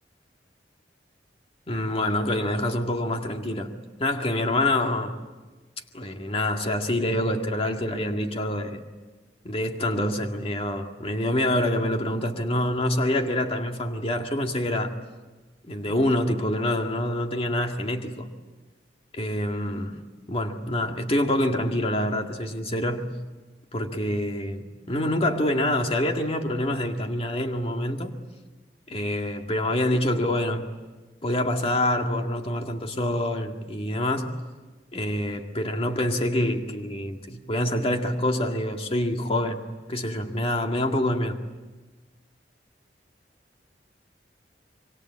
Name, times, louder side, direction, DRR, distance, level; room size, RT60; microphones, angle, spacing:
voice 1, 1.7-5.2 5.9-8.8 9.4-14.9 15.7-18.3 19.1-20.0 20.3-23.2 23.7-28.2 28.9-30.7 31.2-34.4 34.9-41.4, left 1 dB, 35° left, 4 dB, 2.0 m, -26 dB
26.5 x 23.5 x 8.7 m, 1.3 s
head